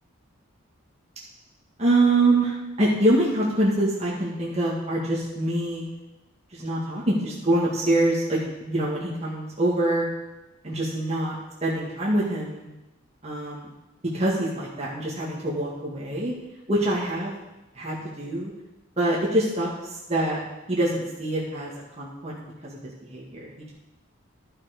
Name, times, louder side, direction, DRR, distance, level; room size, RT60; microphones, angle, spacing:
voice 1, 1.8-5.8 6.5-10.0 10.6-11.3 11.6-12.6 13.2-13.7 14.1-16.3 16.7-17.4 17.8-18.5 19.0-20.4 20.7-21.7 22.0-22.4 22.6-23.7, right 1 dB, 30° right, -6 dB, 1.8 m, -25 dB
11.5 x 5.7 x 5.2 m, 1.0 s
head